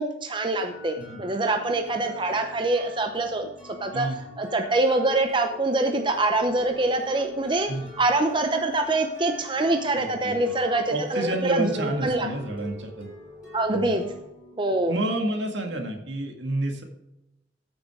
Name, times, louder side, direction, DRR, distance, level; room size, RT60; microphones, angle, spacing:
voice 1, 0.0-4.1 4.4-7.7 8.0-12.3 13.5-14.0 14.6-14.9, right 2 dB, 25° right, 5 dB, 0.8 m, -25 dB
sound 1, 0.6-16.2, left 1 dB, 5° right, 3.3 m, -45 dB
voice 2, 9.9-10.5 10.9-13.1 13.7-14.0 14.9-16.8, right 2 dB, 75° right, 3 dB, 2.0 m, -29 dB
14.0 x 6.4 x 4.9 m, 0.87 s
head